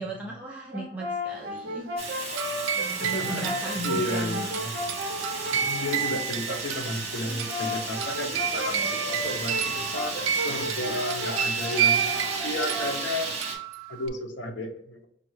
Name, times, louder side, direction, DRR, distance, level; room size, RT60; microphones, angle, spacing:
voice 1, 0.0-1.9 2.7-4.5 6.5-6.6 8.7-9.0 10.8-11.3 12.1-12.5, right 1 dB, 10° right, -3 dB, 0.4 m, -37 dB
Brass instrument, 0.7-6.3 7.2-13.1, equal, 65° right, 0.7 m, -34 dB
Fire, 2.0-13.6, right 3 dB, 35° right, 0.8 m, -34 dB
sound 1, 2.4-14.1, right 9 dB, 90° right, 0.3 m, -31 dB
voice 2, 3.0-4.7 5.5-12.0 12.4-13.4 13.9-15.1, left 1 dB, 65° left, 2 dB, 0.7 m, -33 dB
5.0 x 2.3 x 3.1 m, 0.72 s
head